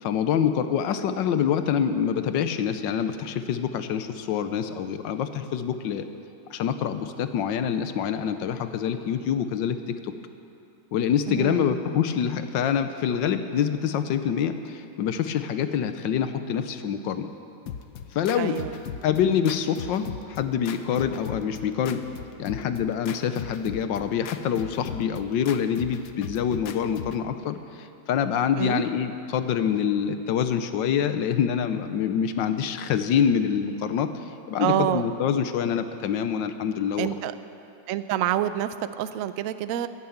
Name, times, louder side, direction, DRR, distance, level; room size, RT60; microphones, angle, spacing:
voice 1, 0.0-6.0 6.5-9.8 10.0-10.1 10.9-17.3 18.1-18.6 19.0-22.0 22.4-34.1 34.5-37.1, left 8 dB, 85° left, 10 dB, 1.5 m, -26 dB
voice 2, 11.3-11.8 18.4-18.8 28.6-28.8 34.6-35.1 37.0-37.3 37.9-39.9, right 11 dB, 75° right, 12 dB, 0.7 m, -27 dB
sound 1, 17.7-27.3, left 8 dB, 60° left, 1.0 m, -39 dB
17.5 x 10.5 x 7.2 m, 2.7 s
omnidirectional pair, 2.0 m